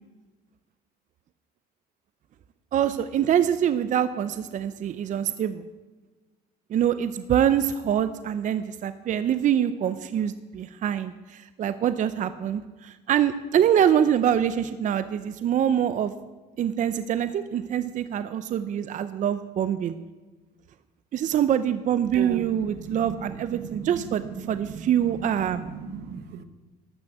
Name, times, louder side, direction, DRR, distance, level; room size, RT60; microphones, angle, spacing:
voice 1, 2.7-5.6 6.7-16.1 16.6-20.0 21.1-25.6, right 9 dB, 50° right, 12 dB, 0.5 m, -25 dB
voice 2, 22.1-26.4, right 7 dB, 80° right, 11 dB, 0.9 m, -37 dB
12.5 x 6.2 x 7.9 m, 1.3 s
cardioid pair, 110°, 17 cm